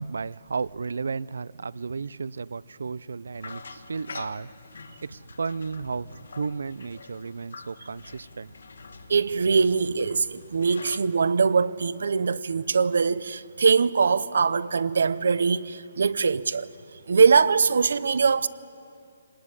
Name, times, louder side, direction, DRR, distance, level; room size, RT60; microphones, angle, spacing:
voice 1, 0.0-4.5 5.0-8.5, right 4 dB, 85° right, 0.5 m, -33 dB
sound 1, 3.3-11.0, left 4 dB, 80° left, 1.7 m, -45 dB
voice 2, 9.1-16.7 17.1-18.5, right 5 dB, 65° right, 0.8 m, -22 dB
24.0 x 19.5 x 9.8 m
hypercardioid pair, 180°, 0 cm